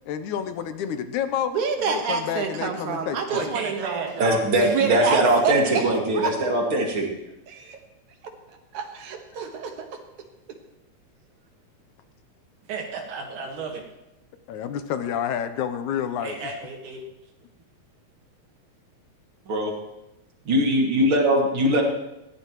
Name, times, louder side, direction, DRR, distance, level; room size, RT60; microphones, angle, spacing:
voice 1, 0.1-1.5 1.8-3.5 14.5-16.4, left 9 dB, 80° left, 9 dB, 2.3 m, -29 dB
voice 2, 1.5-4.1 4.5-6.3 7.5-7.8 8.7-10.0, right 5 dB, 75° right, 4 dB, 2.9 m, -28 dB
voice 3, 3.3-5.3 12.7-13.8 16.2-17.0, right 4 dB, 90° right, 1 dB, 3.2 m, -33 dB
voice 4, 4.2-7.1 19.5-19.7 20.5-21.8, right 1 dB, 45° right, 0 dB, 2.8 m, -21 dB
20.0 x 16.0 x 3.1 m, 0.93 s
omnidirectional pair, 3.4 m